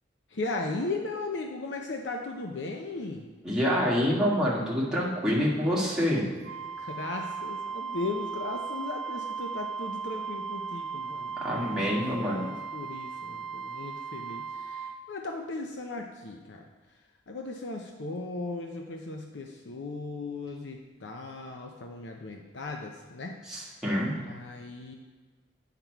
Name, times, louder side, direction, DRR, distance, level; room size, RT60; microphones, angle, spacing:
voice 1, 0.3-3.3 6.8-16.7 17.3-23.4 24.1-24.9, left 3 dB, 70° left, 2 dB, 0.6 m, -37 dB
voice 2, 3.4-6.3 11.4-12.4 23.5-24.2, equal, 5° right, -7 dB, 1.8 m, -26 dB
Wind instrument woodwind instrument, 6.4-15.0, right 5 dB, 65° right, 0.5 m, -37 dB
8.6 x 5.9 x 4.6 m, 1.4 s
head